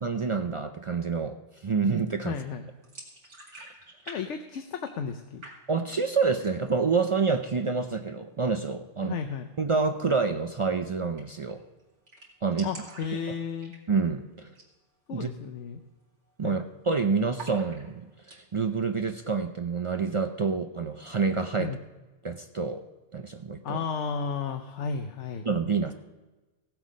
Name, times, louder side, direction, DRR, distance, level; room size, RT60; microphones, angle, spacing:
voice 1, 0.0-2.4 5.7-9.2 9.6-11.6 12.4-12.7 13.9-14.5 15.1-15.3 16.4-21.7 22.2-22.8 23.1-23.8 25.5-25.9, right 4 dB, 50° right, 7 dB, 0.3 m, -28 dB
voice 2, 2.2-2.7 4.1-5.4 9.0-9.5 12.6-13.7 15.1-15.8 16.4-16.6 21.6-21.8 23.6-25.5, left 6 dB, 80° left, 6 dB, 1.1 m, -33 dB
sound 1, 2.8-4.2 4.4-5.1 5.4-6.0 6.3-6.8 7.2-7.3 7.6-8.2 9.9-10.1 10.4-10.5 10.7-10.8 11.2-11.5 11.8-11.9 12.1-14.1 14.5-14.7 15.1-15.2 15.7-16.0 16.3-16.9 17.3-18.4, right 2 dB, 80° right, 2.7 m, -47 dB
16.5 x 7.7 x 5.2 m, 1.2 s
omnidirectional pair, 1.2 m